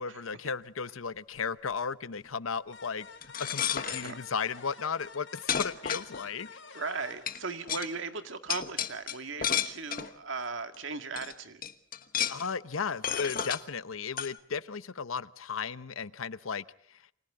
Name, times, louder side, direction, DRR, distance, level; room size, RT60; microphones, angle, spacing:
voice 1, 0.0-3.1 3.5-6.5 12.3-16.6, left 5 dB, 90° left, 16 dB, 0.9 m, -35 dB
sound 1, 2.7-8.1, left 4 dB, 60° left, 5.5 m, -50 dB
sound 2, 3.2-4.1 5.0-5.1 5.5-6.5 7.3-7.4 7.7-7.9 8.5-10.1 10.7-10.8 11.2-11.3 11.6-12.5 13.0-13.6 14.2-14.3, left 9 dB, 45° left, 1.3 m, -32 dB
voice 2, 3.9-4.2 6.7-11.6, right 4 dB, 70° right, 8 dB, 2.1 m, -37 dB
29.5 x 25.5 x 3.7 m, 0.66 s
head